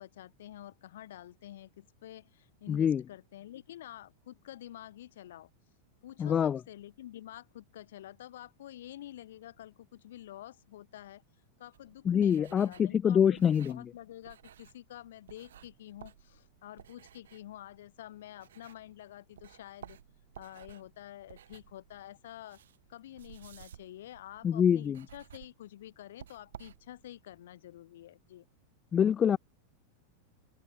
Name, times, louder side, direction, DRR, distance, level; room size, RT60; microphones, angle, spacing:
voice 1, 0.0-5.5 6.0-11.2 11.6-20.0 20.4-22.6 22.9-28.4, left 13 dB, 60° left, 4.9 m, -49 dB
voice 2, 2.7-3.0 6.2-6.6 12.1-13.9 24.4-25.0 28.9-29.4, left 8 dB, 25° left, 0.3 m, -25 dB
sound 1, 11.7-19.0 19.3-27.2, right 10 dB, 60° right, 3.9 m, -55 dB
figure-of-eight pair, 90°, 0 cm